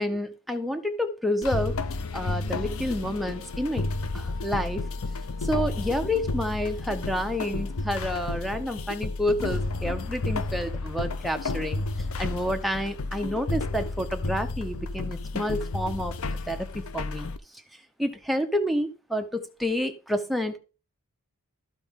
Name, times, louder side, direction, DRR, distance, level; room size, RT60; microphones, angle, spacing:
voice 1, 0.0-1.8 2.1-3.9 4.1-4.8 5.4-11.9 12.2-17.3 18.0-20.6, left 1 dB, ahead, 4 dB, 0.9 m, -29 dB
sound 1, 1.4-17.4, left 3 dB, 65° left, 0.6 m, -31 dB
13.5 x 4.5 x 3.7 m, 0.33 s
head